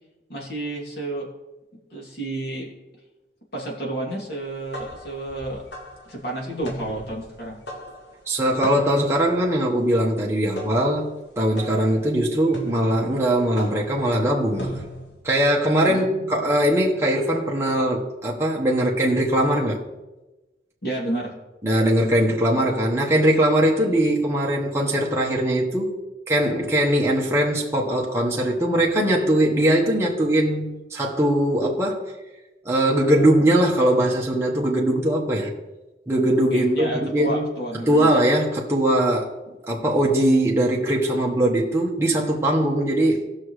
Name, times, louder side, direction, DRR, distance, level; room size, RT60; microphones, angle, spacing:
voice 1, 0.3-1.3 1.9-2.7 3.5-5.6 6.0-7.6 15.9-16.4 20.8-21.3 36.5-38.1, right 2 dB, 65° left, 2.8 m, -30 dB
sound 1, 4.4-15.2, equal, 90° left, 1.9 m, -39 dB
voice 2, 8.3-14.8 15.2-19.8 21.6-26.0 26.3-32.1 32.6-35.5 36.1-37.4 37.9-39.3 39.7-43.3, right 1 dB, 15° right, 1.2 m, -21 dB
18.0 x 6.2 x 3.2 m
head